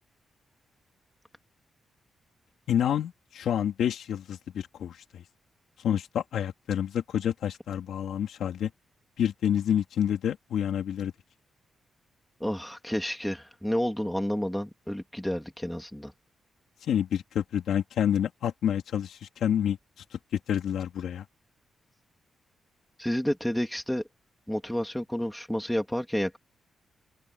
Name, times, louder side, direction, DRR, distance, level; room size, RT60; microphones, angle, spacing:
voice 1, 2.7-5.2 5.8-8.7 9.2-11.1 16.9-19.8 20.5-21.2, left 9 dB, 85° left, 3.4 m, -28 dB
voice 2, 12.4-16.1 23.0-24.0 24.5-26.4, equal, 5° left, 2.8 m, -30 dB
wide cardioid pair, 155°, 0 cm